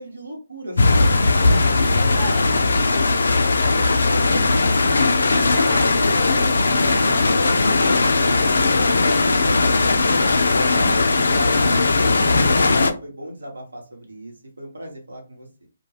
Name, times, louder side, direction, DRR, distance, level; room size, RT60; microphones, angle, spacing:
voice 1, 0.0-1.2 4.1-4.7 6.8-9.1 10.4-15.7, equal, 80° right, 1 dB, 1.0 m, -36 dB
sound 1, 0.8-12.9, left 3 dB, 70° left, 0.4 m, -18 dB
voice 2, 1.4-4.3 4.8-7.3 9.0-9.5, right 1 dB, 30° right, 1 dB, 0.5 m, -36 dB
2.2 x 2.2 x 3.1 m, 0.33 s
figure-of-eight pair, 135°, 0 cm